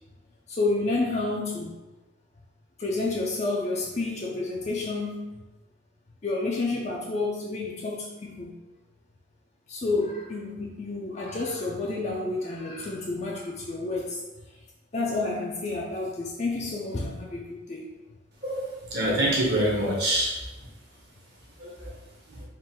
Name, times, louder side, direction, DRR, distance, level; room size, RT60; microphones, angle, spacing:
voice 1, 0.5-1.8 2.8-5.3 6.2-8.6 9.7-14.2 14.9-17.9, left 3 dB, 35° left, -2 dB, 0.4 m, -30 dB
voice 2, 18.4-20.3 21.6-21.9 22.3-22.4, right 1 dB, 50° right, -3 dB, 1.0 m, -26 dB
3.7 x 2.5 x 4.2 m, 1.1 s
head